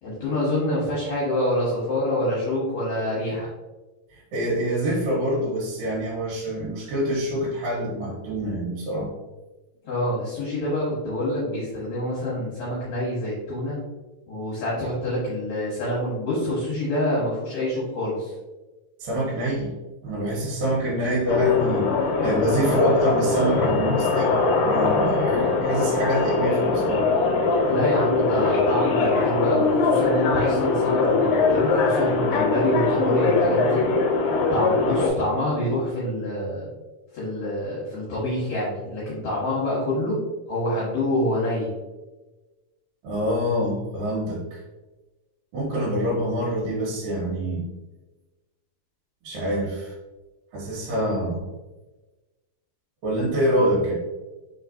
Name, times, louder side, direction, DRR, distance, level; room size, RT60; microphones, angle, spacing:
voice 1, 0.0-3.5 9.8-13.8 14.3-18.3 27.7-33.9 34.5-36.7 37.1-40.2 40.5-41.7, left 1 dB, 60° left, -7 dB, 2.3 m, -26 dB
voice 2, 4.1-9.1 19.0-19.8 20.0-21.9 22.2-27.1 43.0-44.6 45.5-47.7 49.2-49.9 50.5-51.4 53.0-53.9, equal, 80° right, -6 dB, 2.8 m, -26 dB
sound 1, 21.3-35.1, left 4 dB, 85° left, 2.5 m, -22 dB
5.2 x 3.9 x 2.6 m, 1.2 s
omnidirectional pair, 4.0 m